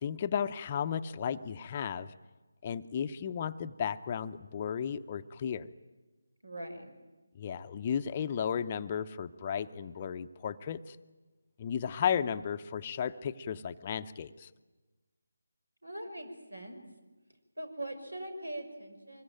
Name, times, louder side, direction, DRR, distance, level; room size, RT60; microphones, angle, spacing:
voice 1, 0.0-2.1 2.6-5.7 7.3-11.0 11.6-14.5, left 8 dB, 30° left, 11 dB, 0.7 m, -34 dB
voice 2, 6.4-6.9 15.8-16.8 17.6-19.2, right 1 dB, 85° right, 8 dB, 5.7 m, -41 dB
25.0 x 22.0 x 9.1 m, 1.2 s
figure-of-eight pair, 155°, 0 cm